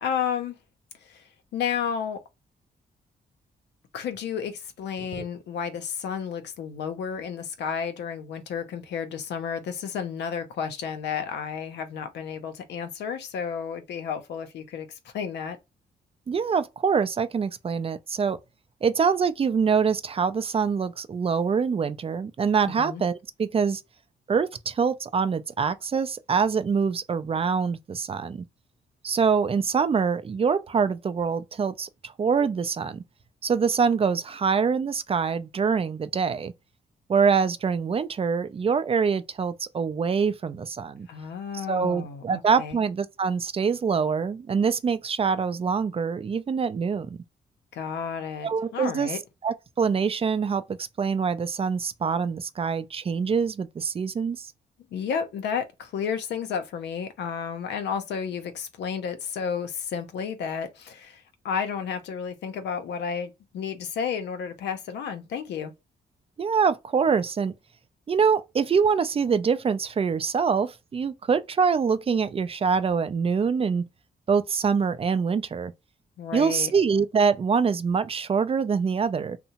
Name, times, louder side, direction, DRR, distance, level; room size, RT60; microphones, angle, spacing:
voice 1, 0.0-0.6 1.0-1.3 1.5-2.2 3.9-15.6 22.7-23.0 41.1-42.8 47.7-49.2 54.9-65.7 76.2-76.7, left 7 dB, 85° left, 0.5 m, -32 dB
voice 2, 16.3-18.4 18.8-23.8 24.3-28.4 29.0-33.0 33.4-36.5 37.1-41.1 41.7-47.2 48.4-49.1 49.4-54.5 66.4-67.5 68.1-73.8 74.3-75.7 76.3-79.4, right 6 dB, 35° right, 0.3 m, -25 dB
2.7 x 2.1 x 2.8 m
cardioid pair, 75°, 17 cm